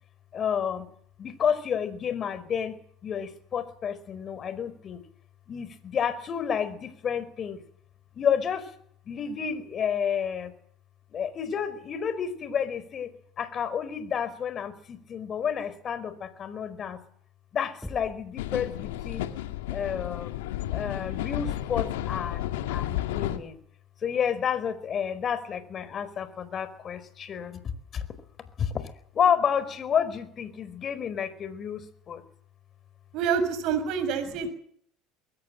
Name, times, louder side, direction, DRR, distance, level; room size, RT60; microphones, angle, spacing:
voice 1, 0.3-0.9 1.2-2.8 3.0-5.0 5.5-7.6 8.1-8.7 9.1-10.5 11.1-17.0 17.5-19.2 19.7-20.3 20.7-23.6 24.0-27.6 27.9-28.0 28.6-28.8 29.1-32.2, left 8 dB, 40° left, 15 dB, 4.7 m, -30 dB
Knock, 17.8-18.5, left 1 dB, 5° left, 2.6 m, -41 dB
sound 1, 18.4-23.4, left 13 dB, 85° left, 2.2 m, -32 dB
voice 2, 33.1-34.5, right 6 dB, 65° right, 9 dB, 6.2 m, -27 dB
22.5 x 19.5 x 7.9 m, 0.63 s
supercardioid pair, 90°, 0 cm